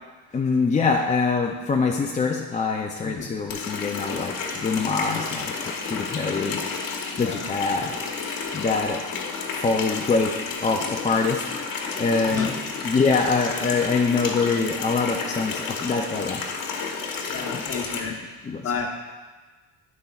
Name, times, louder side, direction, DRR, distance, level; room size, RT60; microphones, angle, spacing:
voice 1, 0.3-6.6 7.2-7.9 8.5-9.1 9.5-12.5 12.8-16.4 17.5-17.6 18.4-18.7, left 4 dB, 20° left, 1 dB, 0.5 m, -24 dB
Water tap faucet, 3.5-18.0, left 5 dB, 55° left, 1.2 m, -31 dB
voice 2, 7.1-7.5 12.3-12.6 13.1-13.2 17.3-18.2 18.6-18.9, left 5 dB, 35° left, 2 dB, 1.1 m, -32 dB
9.5 x 6.7 x 2.4 m, 1.3 s
supercardioid pair, 85°, 40 cm